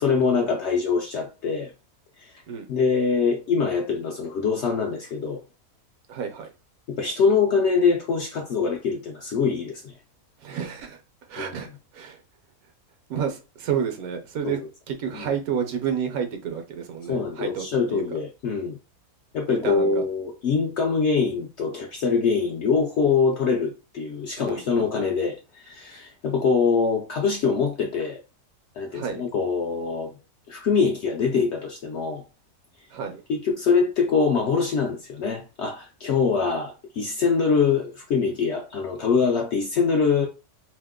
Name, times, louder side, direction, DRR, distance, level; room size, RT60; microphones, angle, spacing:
voice 1, 0.0-1.7 2.2-2.4 2.7-5.4 6.9-9.9 11.4-11.5 14.4-14.6 15.1-15.3 17.1-18.8 19.3-28.2 28.8-30.1 30.5-32.2 33.3-40.3, left 5 dB, 70° left, 0.6 m, -24 dB
voice 2, 6.1-6.5 10.4-11.0 11.3-12.2 13.1-14.6 14.9-18.0 19.5-20.0 24.5-25.2 28.9-29.2 32.9-33.2, right 7 dB, 75° right, 1.1 m, -30 dB
2.8 x 2.1 x 3.5 m
omnidirectional pair, 1.6 m